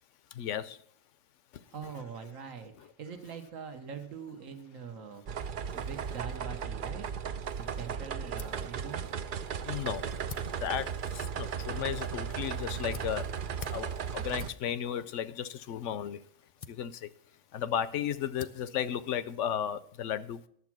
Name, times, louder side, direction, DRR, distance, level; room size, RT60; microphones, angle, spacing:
voice 1, 0.3-0.8 1.8-1.9 2.8-2.9 9.6-10.1 10.4-13.3 13.7-16.2 16.7-17.1 17.5-20.4, left 9 dB, 70° left, 0.9 m, -34 dB
voice 2, 1.7-5.2 5.7-7.1 7.6-9.1, right 6 dB, 75° right, 1.5 m, -43 dB
sound 1, 5.3-14.5, right 7 dB, 55° right, 0.5 m, -36 dB
sound 2, 7.8-19.9, left 5 dB, 40° left, 0.5 m, -53 dB
11.0 x 7.3 x 5.9 m
omnidirectional pair, 1.4 m